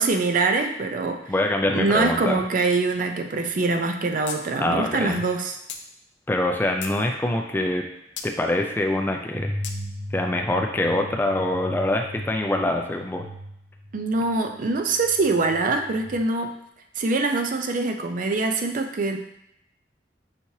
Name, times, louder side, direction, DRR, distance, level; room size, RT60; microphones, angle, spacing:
voice 1, 0.0-1.2 1.7-5.6 13.9-16.5 17.0-19.2, right 3 dB, 50° right, 5 dB, 0.4 m, -24 dB
voice 2, 1.3-2.4 4.6-5.2 6.3-7.8 8.2-9.5 10.1-13.2, left 1 dB, 10° left, 2 dB, 0.3 m, -24 dB
sound 1, 4.3-4.4 4.7-4.8 5.7-5.8 6.4-7.0 8.2-8.3 9.6-9.8, left 7 dB, 90° left, 0.5 m, -35 dB
sound 2, 9.3-16.1, equal, 75° right, 1.1 m, -37 dB
5.8 x 3.1 x 2.7 m, 0.78 s
head